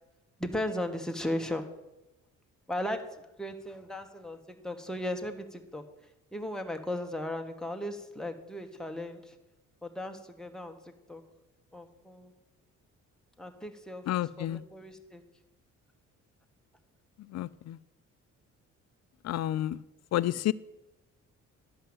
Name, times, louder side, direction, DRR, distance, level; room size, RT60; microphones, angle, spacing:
voice 1, 0.4-1.7 2.7-5.8 6.3-9.4 9.8-11.2 11.7-12.3 13.4-15.2, left 1 dB, ahead, 4 dB, 1.3 m, -36 dB
voice 2, 14.1-14.6 17.3-17.8 19.2-19.8 20.1-20.5, left 13 dB, 60° left, 18 dB, 0.5 m, -30 dB
12.0 x 5.5 x 7.8 m, 0.97 s
cardioid pair, 90°, 30 cm